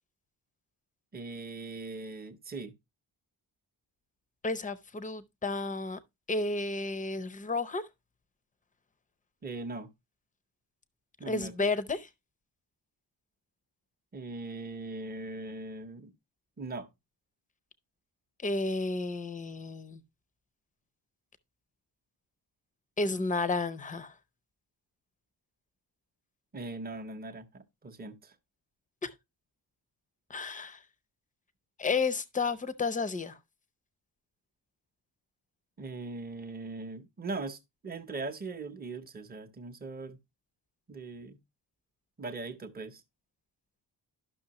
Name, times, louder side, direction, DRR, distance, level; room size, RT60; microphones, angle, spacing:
voice 1, 1.1-2.7 9.4-9.9 11.2-11.7 14.1-16.1 16.6-16.9 26.5-28.3 35.8-40.2 40.9-41.4 42.2-43.0, right 3 dB, 20° right, 0.7 m, -40 dB
voice 2, 4.4-6.0 6.3-7.8 11.3-12.1 18.4-20.0 23.0-24.1 29.0-29.1 30.3-30.8 31.8-33.4, left 3 dB, 20° left, 0.5 m, -32 dB
11.5 x 6.0 x 2.8 m
wide cardioid pair, 175°, 44 cm